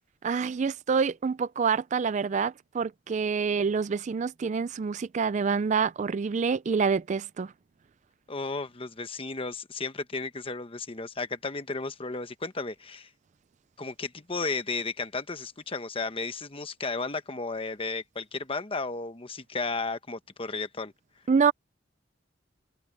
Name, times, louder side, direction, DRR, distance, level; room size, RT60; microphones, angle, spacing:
voice 1, 0.2-7.5 21.3-21.5, right 5 dB, 40° right, 0.4 m, -27 dB
voice 2, 8.3-13.1 13.8-20.9, left 3 dB, 30° left, 1.1 m, -34 dB
head